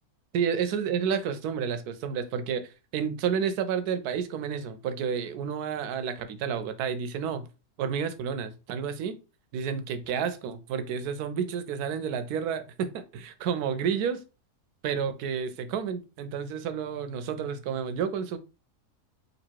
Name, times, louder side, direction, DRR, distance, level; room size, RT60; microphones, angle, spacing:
voice 1, 0.3-7.5 7.8-9.2 9.5-14.2 14.8-18.4, right 7 dB, 80° right, 1.1 m, -30 dB
4.0 x 2.7 x 4.5 m
omnidirectional pair, 1.7 m